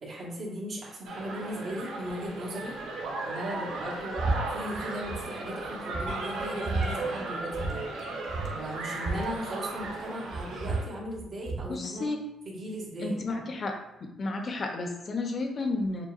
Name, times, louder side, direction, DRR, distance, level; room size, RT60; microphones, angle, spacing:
voice 1, 0.0-2.8 3.2-4.2 4.5-7.9 8.5-12.1 12.4-13.4, equal, 65° right, -7 dB, 1.4 m, -37 dB
sound 1, 1.0-10.8, right 3 dB, 90° right, 0.8 m, -36 dB
sound 2, 4.2-4.4 4.7-5.2 5.6-5.7 5.9-6.9 7.5-7.7 8.0-8.1 8.3-10.0 10.3-11.7, right 3 dB, 45° right, 1.0 m, -32 dB
voice 2, 11.7-12.2 13.0-13.7 14.0-16.1, left 3 dB, 45° left, 3 dB, 0.8 m, -32 dB
6.7 x 2.3 x 2.5 m, 0.85 s
cardioid pair, 90°, 0 cm